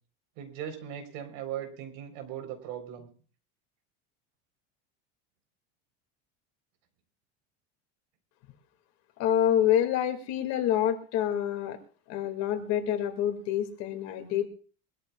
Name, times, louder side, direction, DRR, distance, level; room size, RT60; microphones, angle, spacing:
voice 1, 0.4-3.1, right 10 dB, 75° right, 6 dB, 4.2 m, -38 dB
voice 2, 9.2-11.8 12.1-14.5, left 10 dB, 55° left, 6 dB, 2.4 m, -27 dB
23.5 x 13.5 x 2.4 m, 0.39 s
cardioid pair, 145°, 32 cm